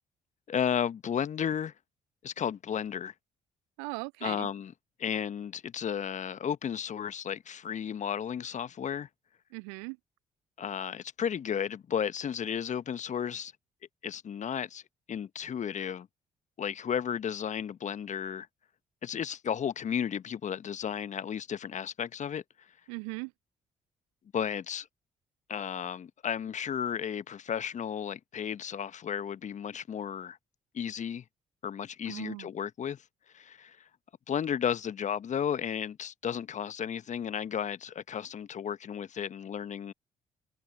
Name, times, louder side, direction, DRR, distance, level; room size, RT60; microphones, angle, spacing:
voice 1, 0.5-1.7 2.2-3.1 4.2-4.7 5.0-9.1 10.6-13.5 14.0-14.8 15.1-16.1 16.6-18.5 19.0-22.4 24.3-24.9 25.5-30.4 30.7-31.2 31.6-33.0 33.3-33.9 34.3-39.9, left 8 dB, 45° left, 1.4 m, -33 dB
voice 2, 3.8-4.5 9.5-10.0 22.9-23.3 32.1-32.5, right 40 dB or more, 65° right, 0.4 m, -39 dB
figure-of-eight pair, 40°, 17 cm